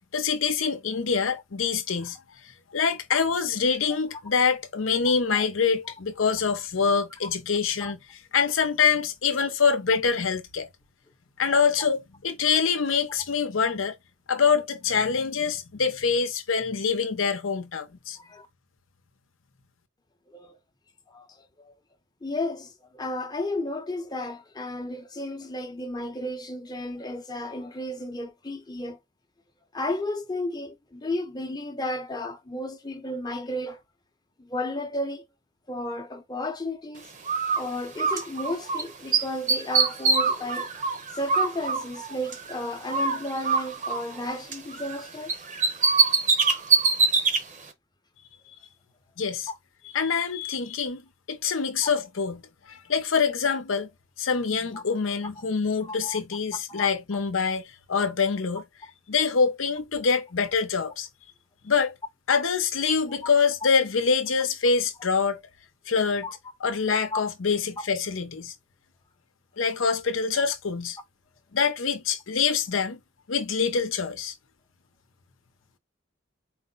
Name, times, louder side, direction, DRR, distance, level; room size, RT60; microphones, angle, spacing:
voice 1, 0.1-2.2 2.7-8.0 8.3-10.7 11.4-13.9 14.3-18.2 49.2-49.5 49.9-51.0 51.3-52.4 52.7-53.9 54.2-58.6 59.1-61.1 61.6-61.9 62.3-65.4 65.9-66.3 66.6-68.5 69.6-71.0 71.5-73.0 73.3-74.3, left 5 dB, 80° left, 0.8 m, -25 dB
voice 2, 22.2-29.0 29.7-33.8 34.4-35.2 35.7-37.1 37.6-40.7 41.1-45.3 49.5-49.6 54.7-54.8 55.9-56.2 56.7-56.9 66.2-66.3 67.1-67.2, left 1 dB, 20° left, 0.8 m, -33 dB
Bird, 37.3-38.8 39.1-42.6 42.9-45.0 45.3-47.4, right 4 dB, 40° right, 0.8 m, -24 dB
4.7 x 2.1 x 3.9 m
head